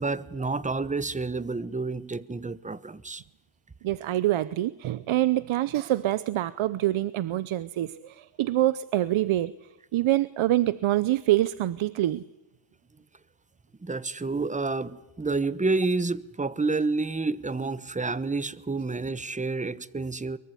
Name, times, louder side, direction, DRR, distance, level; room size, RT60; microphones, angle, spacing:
voice 1, 0.0-3.2 13.8-20.4, right 3 dB, 15° right, 1.1 m, -29 dB
voice 2, 3.8-9.5 9.9-12.2, right 14 dB, 75° right, 0.9 m, -25 dB
24.0 x 23.0 x 9.8 m
cardioid pair, 125°, 48 cm